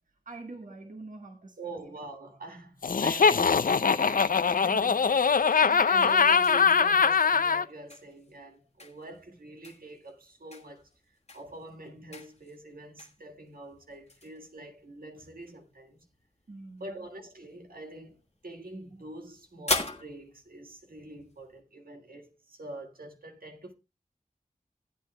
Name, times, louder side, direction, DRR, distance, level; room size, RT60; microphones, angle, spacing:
voice 1, 0.2-1.9 4.7-4.8 5.6-6.0 16.5-16.9, right 2 dB, 60° right, 1.4 m, -45 dB
voice 2, 1.6-10.9 11.3-16.0 16.8-23.7, right 2 dB, 75° right, 1.7 m, -45 dB
Laughter, 2.8-7.6, left 5 dB, 70° left, 0.5 m, -22 dB
sound 1, 5.6-21.6, left 3 dB, 45° left, 1.5 m, -43 dB
16.0 x 8.8 x 2.2 m
wide cardioid pair, 50°, 15 cm